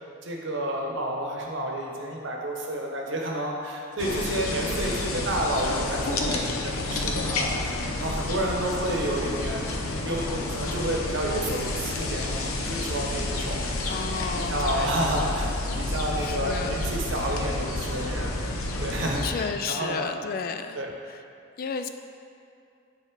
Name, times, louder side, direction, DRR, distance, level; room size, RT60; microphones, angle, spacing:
voice 1, 0.2-7.7 8.0-15.5 15.8-18.4 18.8-20.1 20.7-20.9, right 1 dB, 60° right, -1 dB, 1.0 m, -30 dB
sound 1, 4.0-19.3, left 2 dB, 85° left, 0.7 m, -30 dB
voice 2, 13.9-14.9 16.2-16.8 19.2-21.2 21.6-21.9, left 5 dB, 45° left, 8 dB, 0.3 m, -33 dB
7.3 x 4.1 x 5.1 m, 2.6 s
head